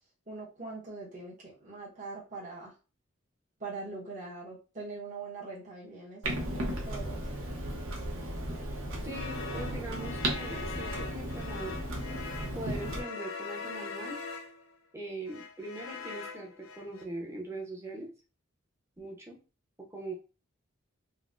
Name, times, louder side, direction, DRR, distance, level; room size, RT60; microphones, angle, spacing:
voice 1, 0.3-2.7 3.6-7.3, right 3 dB, 40° right, -6 dB, 1.1 m, -42 dB
Clock, 6.2-13.0, right 1 dB, 85° right, 0.8 m, -35 dB
voice 2, 9.0-11.8 12.5-14.2 14.9-18.1 19.0-19.4 19.9-20.1, right 2 dB, 15° right, -1 dB, 0.7 m, -41 dB
sound 1, 9.1-14.8 15.3-17.0, left 4 dB, 85° left, 0.5 m, -42 dB
4.0 x 2.0 x 2.5 m, 0.33 s
head